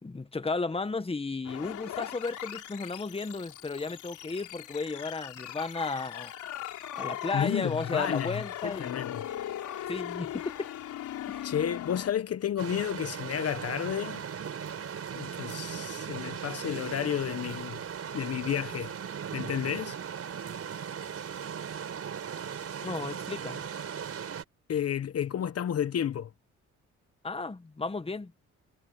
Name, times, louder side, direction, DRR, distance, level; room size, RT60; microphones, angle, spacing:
voice 1, 0.0-6.3 7.0-9.1 9.9-10.7 11.3-11.5 22.8-23.6 27.2-28.3, left 3 dB, 20° left, 1.6 m, -34 dB
sound 1, 1.4-12.1, left 12 dB, 80° left, 3.8 m, -39 dB
voice 2, 7.3-9.2 11.4-14.2 15.1-17.8 18.1-18.9 19.3-20.0 24.7-26.3, left 9 dB, 55° left, 1.2 m, -31 dB
sound 2, 12.6-24.4, right 7 dB, 50° right, 5.3 m, -38 dB
cardioid pair, 90°, 30 cm